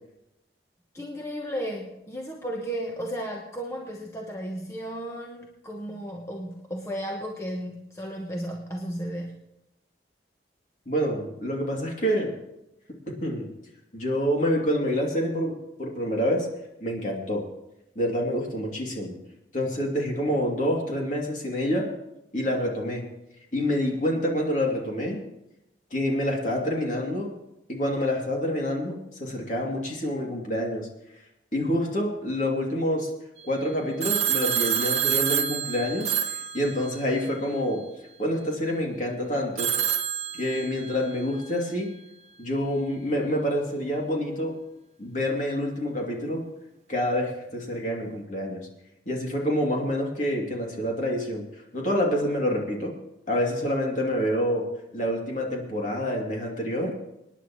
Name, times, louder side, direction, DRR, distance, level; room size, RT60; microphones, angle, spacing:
voice 1, 0.9-9.4, equal, 15° left, 0 dB, 1.0 m, -34 dB
voice 2, 10.9-12.3 13.1-13.5 13.9-16.5 16.8-17.4 17.9-19.1 19.5-21.9 22.3-23.0 23.5-25.2 25.9-27.3 27.7-30.9 31.5-33.1 33.5-37.8 38.2-39.7 40.4-41.9 42.4-44.6 45.0-46.4 46.9-48.7 49.1-51.4 51.7-52.9 53.3-54.6 54.9-56.9, equal, 45° left, -1 dB, 2.6 m, -27 dB
Telephone, 34.0-37.3 39.6-41.1, right 9 dB, 40° right, 0.7 m, -27 dB
26.0 x 10.0 x 3.1 m, 0.89 s
head